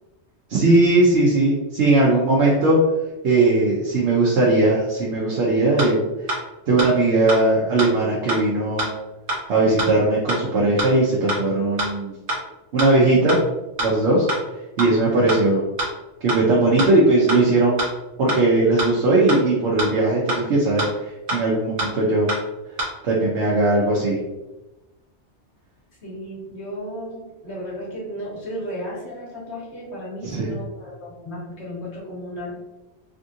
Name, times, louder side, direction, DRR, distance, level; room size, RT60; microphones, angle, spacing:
voice 1, 0.5-2.8 3.2-6.0 6.7-8.9 9.5-12.1 12.7-13.4 13.8-14.3 14.8-15.6 16.2-17.8 18.2-20.8 21.3-22.3 23.0-24.2 30.2-30.5, right 2 dB, 75° right, -4 dB, 0.9 m, -18 dB
sound 1, 5.8-5.9 6.3-6.4 6.8-6.9 7.3-7.4 7.8-7.9 8.3-8.4 8.8-8.9 9.3-9.4 9.8-9.9 10.3-10.4 10.8-10.9 11.3-11.4 11.8-11.9 12.3-12.4 12.8-12.9 13.3-13.4 13.8-13.9 14.3-14.4 14.8-14.9 15.3-15.4 15.8-15.9 16.3-16.4 16.8-16.9 17.3-17.4 17.8-17.9 18.3-18.4 18.8-18.9 19.3-19.4 19.8-19.9 20.3-20.4 20.8-20.9 21.3-21.4 21.8-21.9 22.3-22.4 22.8-22.9, right 1 dB, 55° right, 1.1 m, -24 dB
voice 2, 26.0-32.6, equal, 70° left, -6 dB, 1.6 m, -34 dB
3.5 x 2.5 x 2.6 m, 1.1 s
omnidirectional pair, 1.1 m